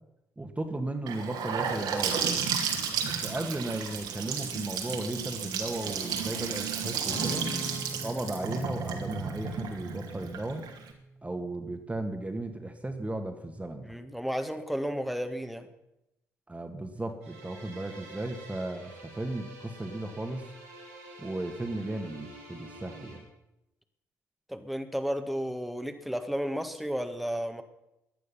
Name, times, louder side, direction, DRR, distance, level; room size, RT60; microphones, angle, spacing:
voice 1, 0.4-2.3 3.0-7.5 8.0-10.7 11.2-13.9 16.5-20.5 21.2-23.3, right 1 dB, 15° right, 5 dB, 2.0 m, -35 dB
Gurgling / Sink (filling or washing) / Bathtub (filling or washing), 1.1-10.9, right 7 dB, 60° right, 2.3 m, -33 dB
Acoustic guitar / Strum, 7.1-11.5, equal, 50° left, 6.0 m, -42 dB
voice 2, 13.8-15.7 24.5-27.6, equal, ahead, 7 dB, 1.9 m, -33 dB
sound 1, 17.2-23.2, right 2 dB, 80° right, 3.8 m, -48 dB
18.0 x 11.5 x 5.8 m, 0.88 s
figure-of-eight pair, 40°, 8 cm